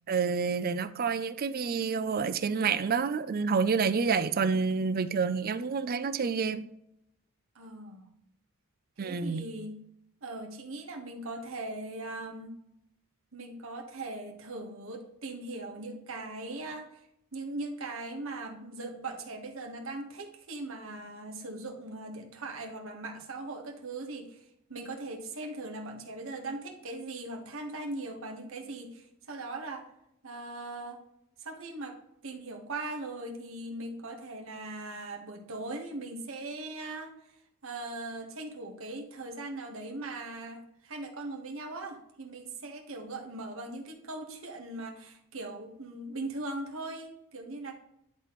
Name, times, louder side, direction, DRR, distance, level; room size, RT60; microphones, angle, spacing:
voice 1, 0.1-6.7 9.0-9.4, right 5 dB, 45° right, 0.5 m, -28 dB
voice 2, 7.5-8.1 9.0-9.8 10.2-12.6 13.3-17.0 17.3-24.4 24.7-29.9 30.2-31.0 31.4-32.0 32.2-37.1 37.6-47.7, right 2 dB, 65° right, 1.4 m, -40 dB
10.5 x 4.2 x 3.1 m
head